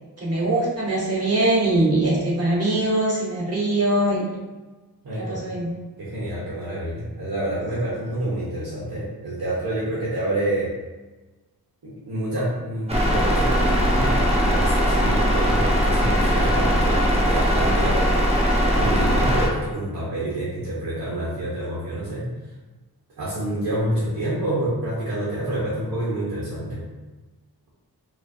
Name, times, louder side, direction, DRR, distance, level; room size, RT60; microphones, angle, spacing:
voice 1, 0.2-4.2 5.2-5.7, right 1 dB, 40° right, -6 dB, 1.3 m, -22 dB
voice 2, 5.0-5.6 6.0-10.7 11.8-18.1 18.8-22.3 23.2-26.8, right 1 dB, 65° right, -7 dB, 1.1 m, -28 dB
sound 1, 12.9-19.5, equal, 15° right, 0.8 m, -20 dB
4.8 x 2.6 x 2.7 m, 1.2 s
wide cardioid pair, 120°, 39 cm